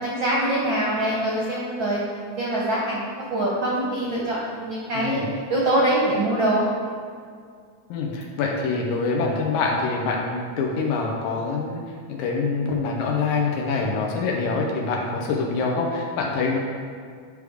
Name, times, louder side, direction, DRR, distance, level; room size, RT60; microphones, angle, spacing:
voice 1, 0.0-2.0 2.4-5.2 5.5-6.7, right 1 dB, 65° right, -5 dB, 1.2 m, -24 dB
voice 2, 4.9-5.3 7.9-11.8 12.1-16.6, left 4 dB, 85° left, -1 dB, 2.2 m, -25 dB
9.8 x 3.5 x 4.8 m, 2.1 s
omnidirectional pair, 3.3 m